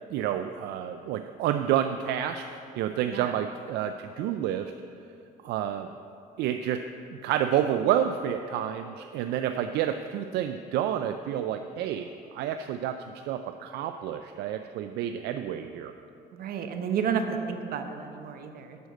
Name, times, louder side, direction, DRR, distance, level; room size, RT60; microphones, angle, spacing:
voice 1, 0.1-2.4 2.8-4.7 5.4-5.9 6.4-6.8 7.2-15.9, right 10 dB, 80° right, 8 dB, 0.4 m, -29 dB
voice 2, 16.3-18.8, right 7 dB, 60° right, 6 dB, 1.0 m, -31 dB
8.0 x 6.4 x 7.6 m, 2.6 s
cardioid pair, 110°, 17 cm